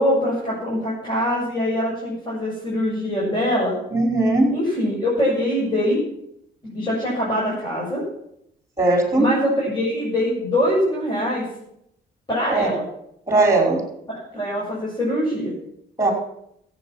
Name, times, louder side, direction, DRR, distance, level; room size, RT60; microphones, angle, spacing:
voice 1, 0.0-3.8 4.5-6.0 6.6-8.0 9.2-11.4 12.3-12.8 14.1-15.5, equal, 25° left, -6 dB, 7.1 m, -23 dB
voice 2, 3.9-4.5 8.8-9.3 12.5-12.7 13.3-13.8 16.0-16.1, right 2 dB, 15° right, 2 dB, 5.4 m, -18 dB
14.5 x 8.6 x 7.6 m, 0.75 s
cardioid pair, 90°, 20 cm